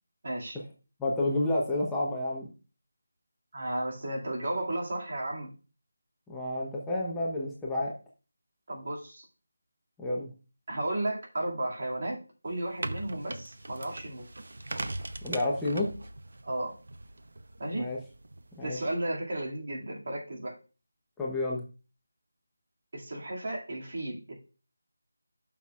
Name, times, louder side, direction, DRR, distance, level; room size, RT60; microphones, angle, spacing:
voice 1, 0.2-0.6 3.5-5.5 8.7-9.2 10.7-14.3 16.4-16.8 17.6-17.9 18.6-20.6 22.9-24.4, right 1 dB, 50° right, -1 dB, 2.3 m, -34 dB
voice 2, 1.0-2.5 6.3-7.9 10.0-10.3 15.2-15.9 17.7-18.0 18.6-18.8 21.2-21.6, left 2 dB, 5° left, -4 dB, 0.8 m, -30 dB
sound 1, 12.5-18.7, right 2 dB, 65° right, 0.8 m, -40 dB
11.5 x 5.8 x 2.4 m, 0.34 s
figure-of-eight pair, 170°, 0 cm